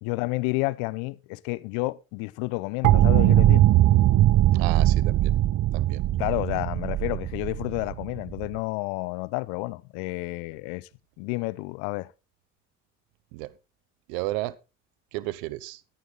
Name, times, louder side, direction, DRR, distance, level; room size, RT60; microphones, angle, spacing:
voice 1, 0.0-3.6 6.2-10.9 11.2-12.1, left 23 dB, 80° left, 0.8 m, -30 dB
sound 1, 2.8-8.5, right 14 dB, 55° right, 0.7 m, -20 dB
voice 2, 4.5-5.3 5.7-6.0 13.3-13.5 14.1-14.6 15.1-15.8, right 18 dB, 85° right, 1.0 m, -33 dB
14.0 x 10.0 x 4.0 m
hypercardioid pair, 55°, 39 cm